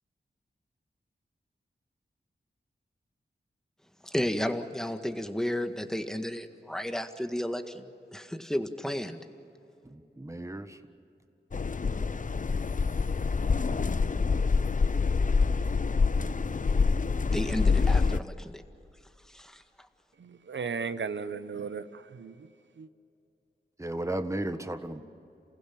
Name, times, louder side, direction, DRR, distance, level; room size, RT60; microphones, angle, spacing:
voice 1, 4.0-9.2 17.3-18.6 19.3-19.6, equal, 5° left, 7 dB, 1.7 m, -33 dB
voice 2, 9.8-10.8 23.8-25.0, right 1 dB, 15° right, 8 dB, 1.5 m, -34 dB
sound 1, 11.5-18.2, left 4 dB, 45° left, 0.7 m, -26 dB
voice 3, 20.2-22.9, right 5 dB, 75° right, 13 dB, 0.9 m, -36 dB
28.5 x 16.0 x 8.7 m, 2.7 s
cardioid pair, 40°, 19 cm